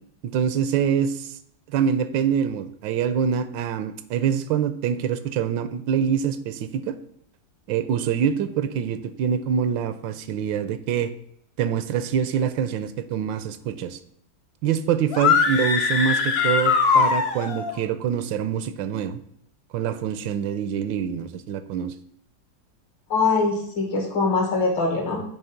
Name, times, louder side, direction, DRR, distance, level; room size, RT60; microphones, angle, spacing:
voice 1, 0.2-1.4 1.7-7.0 7.7-11.1 11.6-14.0 14.6-19.2 19.7-21.9, right 8 dB, 80° right, 12 dB, 1.3 m, -25 dB
sound 1, 15.1-17.7, left 5 dB, 55° left, 0.7 m, -21 dB
voice 2, 23.1-25.2, left 3 dB, 80° left, 0 dB, 2.7 m, -22 dB
8.8 x 3.4 x 5.7 m, 0.70 s
omnidirectional pair, 2.0 m